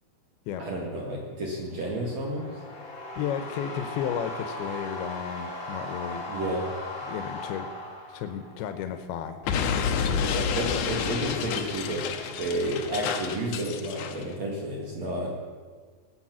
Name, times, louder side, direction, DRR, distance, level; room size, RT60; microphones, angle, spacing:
voice 1, 0.6-2.5 6.3-6.7 10.1-15.3, right 1 dB, 50° right, -1 dB, 2.5 m, -31 dB
sound 1, 1.6-8.7, left 2 dB, 35° left, 3.3 m, -38 dB
voice 2, 3.2-6.3 7.0-7.7 8.1-9.4 9.9-10.2, left 8 dB, 90° left, 8 dB, 2.7 m, -33 dB
Explosion, 9.4-14.2, left 7 dB, 70° left, 1.9 m, -29 dB
19.5 x 8.7 x 6.1 m, 1.5 s
omnidirectional pair, 4.4 m